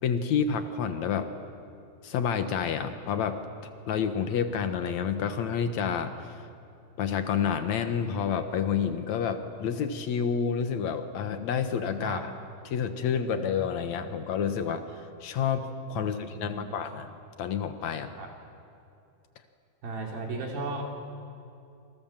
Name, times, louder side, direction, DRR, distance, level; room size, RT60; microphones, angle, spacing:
voice 1, 0.0-1.3 2.0-6.4 7.0-12.3 12.7-17.1 17.4-18.1, left 7 dB, 60° left, 8 dB, 2.0 m, -29 dB
voice 2, 16.0-16.7 18.2-18.3 19.8-20.8, right 3 dB, 65° right, 0 dB, 5.3 m, -36 dB
28.5 x 26.0 x 7.4 m, 2.7 s
omnidirectional pair, 4.6 m